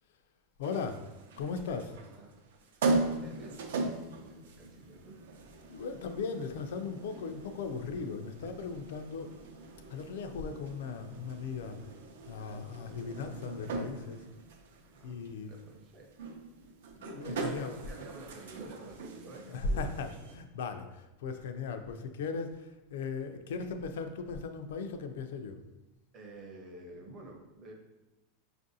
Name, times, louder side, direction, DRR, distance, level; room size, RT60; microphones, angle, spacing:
voice 1, 0.6-1.0 1.4-2.0 5.7-9.4 9.9-11.9 12.3-14.2 15.0-15.5 17.0-17.8 19.5-25.6, left 4 dB, 75° left, 7 dB, 0.4 m, -37 dB
sound 1, 0.6-20.3, right 3 dB, 80° right, 0.5 m, -39 dB
voice 2, 1.9-5.2 14.8-15.2 15.4-16.5 17.2-20.1 26.1-27.7, right 2 dB, 25° right, 1 dB, 0.6 m, -50 dB
5.3 x 2.5 x 2.6 m, 1.0 s
supercardioid pair, 170°, 0 cm